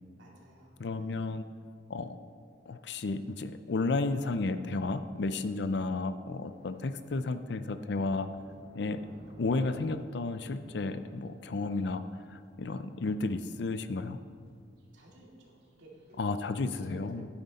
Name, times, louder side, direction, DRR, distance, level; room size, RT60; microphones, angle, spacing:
voice 1, 0.2-1.4 8.4-8.9 14.9-17.2, right 1 dB, 75° right, -3 dB, 2.3 m, -55 dB
voice 2, 0.8-1.5 1.9-2.2 2.7-8.3 8.7-9.0 9.4-12.0 12.3-14.2 16.2-17.3, left 3 dB, 60° left, 11 dB, 0.5 m, -32 dB
Thunder, 6.4-16.4, equal, 55° right, 2.5 m, -58 dB
10.0 x 9.6 x 4.1 m, 2.1 s
head